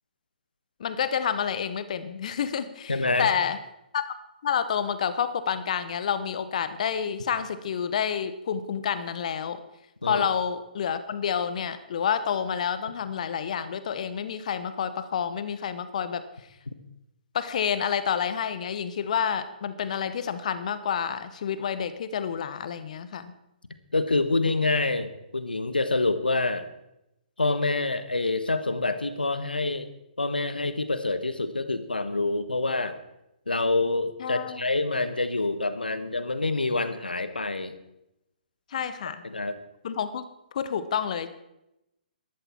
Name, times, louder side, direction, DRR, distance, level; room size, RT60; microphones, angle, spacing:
voice 1, 0.8-3.6 3.9-4.2 4.4-9.6 10.0-16.2 17.3-23.3 34.2-34.6 38.7-39.2 39.8-40.3 40.5-41.3, left 7 dB, 50° left, 12 dB, 1.1 m, -29 dB
voice 2, 2.9-3.3 10.0-10.2 23.9-26.7 27.4-29.9 30.2-33.0 33.5-37.7 39.2-39.6, left 3 dB, 80° left, 11 dB, 1.3 m, -26 dB
14.0 x 12.5 x 4.5 m, 0.86 s
figure-of-eight pair, 125°, 5 cm